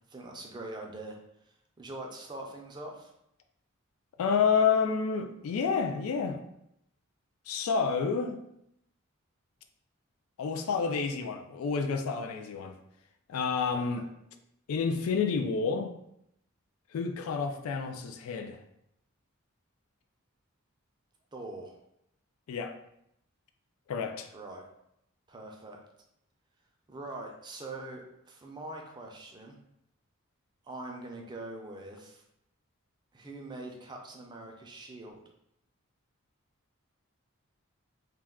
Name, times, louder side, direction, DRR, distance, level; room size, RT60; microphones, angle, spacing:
voice 1, 0.1-1.2 1.4-3.1 13.9-14.1 21.3-21.8 24.3-24.6 25.3-25.8 26.9-29.6 30.6-32.2 33.1-35.2, right 2 dB, 20° right, 1 dB, 0.4 m, -43 dB
voice 2, 4.2-6.4 7.5-8.4 10.4-12.8 13.3-14.1 14.7-15.9 16.9-18.6 22.5-22.7 23.9-24.3, left 5 dB, 85° left, 6 dB, 0.3 m, -29 dB
2.3 x 2.2 x 3.4 m, 0.78 s
head